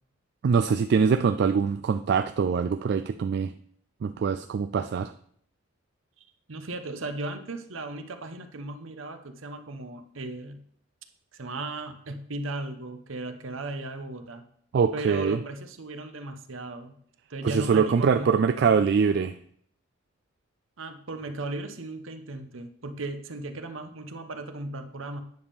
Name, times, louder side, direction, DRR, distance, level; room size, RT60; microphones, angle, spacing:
voice 1, 0.4-3.5 4.0-5.1 14.7-15.4 17.4-19.3, right 6 dB, 55° right, 10 dB, 0.3 m, -23 dB
voice 2, 6.5-10.6 11.3-14.4 14.9-16.9 17.3-18.8 20.8-25.2, right 2 dB, 75° right, 8 dB, 0.9 m, -36 dB
9.5 x 3.6 x 6.7 m, 0.64 s
head